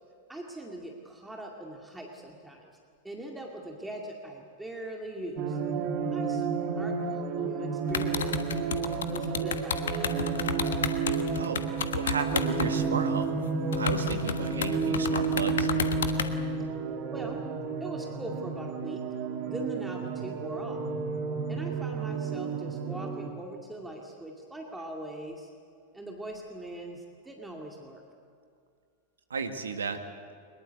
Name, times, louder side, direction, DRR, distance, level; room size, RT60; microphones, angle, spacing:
voice 1, 0.3-2.7 3.0-5.6 6.0-6.5 6.8-8.3 9.1-10.1 17.1-17.4 17.8-19.0 19.5-20.8 21.5-25.5 25.9-28.0, right 1 dB, 5° right, 0 dB, 2.3 m, -41 dB
sound 1, 5.4-23.3, right 5 dB, 40° right, 1.9 m, -31 dB
sound 2, 7.9-12.8 13.2-13.3 13.7-16.3, left 7 dB, 65° left, 1.3 m, -32 dB
voice 2, 11.9-13.3 13.8-15.7 29.3-30.0, right 5 dB, 70° right, 7 dB, 1.9 m, -33 dB
23.0 x 21.0 x 8.2 m, 2.2 s
figure-of-eight pair, 90°, 0 cm